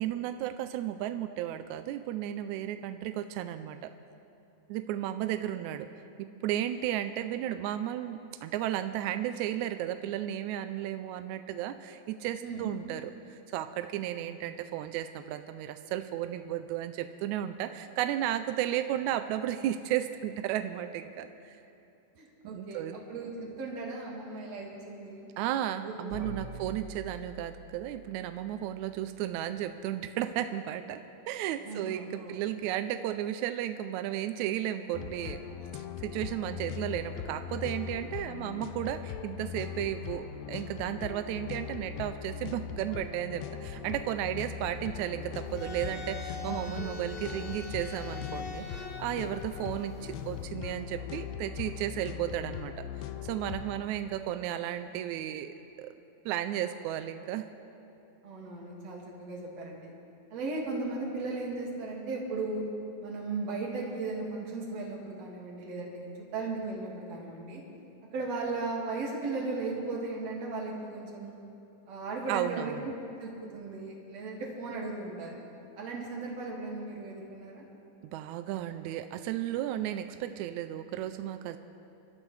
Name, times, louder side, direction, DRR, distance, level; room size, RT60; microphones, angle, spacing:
voice 1, 0.0-3.9 4.7-5.9 6.2-21.6 22.4-23.0 25.4-31.0 31.3-35.4 36.0-52.7 53.0-55.9 56.3-57.5 72.3-72.9 78.1-81.6, right 12 dB, 80° right, 9 dB, 1.7 m, -34 dB
voice 2, 22.2-25.3 25.8-25.9 26.2-26.6 31.6-32.4 46.4-47.1 53.7-53.8 58.2-59.9 60.3-62.6 63.0-66.0 66.3-67.6 68.1-71.4 71.9-72.9 73.2-75.4 75.8-77.6, right 3 dB, 55° right, -2 dB, 3.1 m, -37 dB
sound 1, 26.1-30.0, equal, 25° right, 2.5 m, -47 dB
sound 2, 34.9-53.8, left 8 dB, 90° left, 1.5 m, -40 dB
sound 3, 45.5-50.5, left 5 dB, 60° left, 1.1 m, -43 dB
27.0 x 13.0 x 3.3 m, 2.9 s
omnidirectional pair, 3.7 m